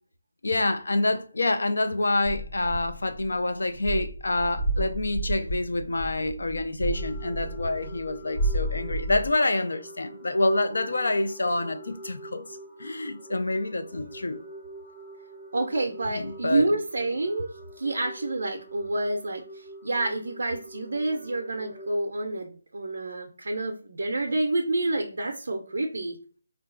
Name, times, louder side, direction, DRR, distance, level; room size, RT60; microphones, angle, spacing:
voice 1, 0.4-12.4 12.8-14.4 16.1-16.6, left 2 dB, 80° left, 0.4 m, -27 dB
sound 1, 2.2-9.3, right 2 dB, 55° left, 0.9 m, -31 dB
sound 2, 6.9-22.0, right 1 dB, ahead, 0.5 m, -46 dB
voice 2, 15.5-17.5 17.8-26.2, right 2 dB, 70° right, 0.4 m, -28 dB
3.7 x 2.3 x 2.4 m
hypercardioid pair, 175°, 0 cm